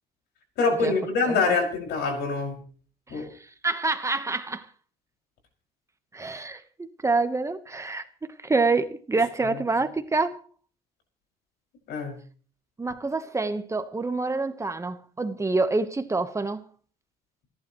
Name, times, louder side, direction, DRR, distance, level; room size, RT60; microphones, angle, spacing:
voice 1, 0.6-2.6 3.1-3.2 11.9-12.2, left 4 dB, 75° left, 5.8 m, -25 dB
voice 2, 1.2-1.6 3.1-3.3 3.6-4.7 6.1-10.4 12.8-16.6, right 3 dB, 15° right, 1.1 m, -27 dB
29.0 x 11.5 x 3.1 m
cardioid pair, 110°, 17 cm